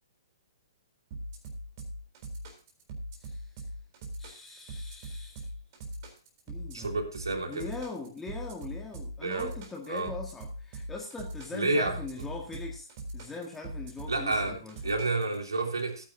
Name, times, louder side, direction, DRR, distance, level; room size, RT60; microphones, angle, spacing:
sound 1, 1.1-15.4, right 1 dB, 45° right, 3.8 m, -40 dB
voice 1, 4.2-5.5 6.5-6.9 7.5-12.9 13.1-14.9, left 3 dB, 10° left, 0 dB, 1.8 m, -41 dB
voice 2, 6.7-7.7 9.2-9.5 9.9-10.1 11.5-12.0 14.1-16.0, right 2 dB, 80° right, 2 dB, 3.2 m, -30 dB
17.5 x 9.7 x 2.8 m, 0.34 s
figure-of-eight pair, 120°, 2 cm